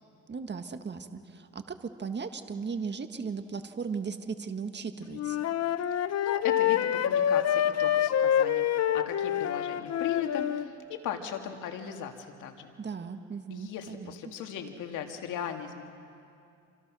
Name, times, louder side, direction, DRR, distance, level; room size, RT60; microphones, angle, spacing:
voice 1, 0.3-5.4 12.8-14.1, right 5 dB, 35° right, 8 dB, 1.7 m, -37 dB
Wind instrument woodwind instrument, 5.1-10.7, left 10 dB, 55° left, 0.9 m, -27 dB
voice 2, 6.0-12.7 13.5-15.8, left 8 dB, 85° left, 4 dB, 2.2 m, -38 dB
28.0 x 26.5 x 6.3 m, 2.5 s
cardioid pair, 90°, 30 cm